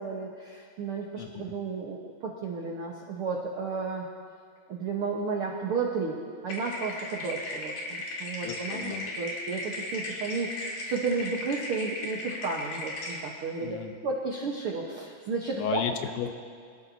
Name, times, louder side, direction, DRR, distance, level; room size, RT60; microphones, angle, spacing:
voice 1, 0.0-4.1 4.7-13.8 14.0-15.8, right 4 dB, 75° right, -1 dB, 1.2 m, -33 dB
sound 1, 6.5-13.2, left 2 dB, 65° left, 3.5 m, -36 dB
voice 2, 8.4-9.1 13.6-13.9 15.5-16.3, left 8 dB, 80° left, 5 dB, 2.7 m, -33 dB
24.0 x 13.5 x 2.7 m, 2.2 s
omnidirectional pair, 4.1 m